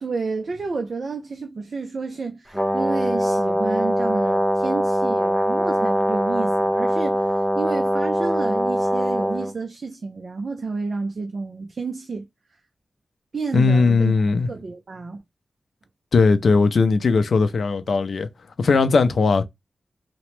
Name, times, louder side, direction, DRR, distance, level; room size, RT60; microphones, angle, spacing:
voice 1, 0.0-7.3 7.5-12.3 13.3-14.1 14.5-15.2, right 4 dB, 55° right, 0.4 m, -30 dB
Brass instrument, 2.5-9.5, equal, 5° left, 0.7 m, -22 dB
voice 2, 13.5-14.5 16.1-18.3 18.6-19.4, left 4 dB, 70° left, 0.4 m, -18 dB
2.9 x 2.1 x 3.1 m
wide cardioid pair, 130°, 0 cm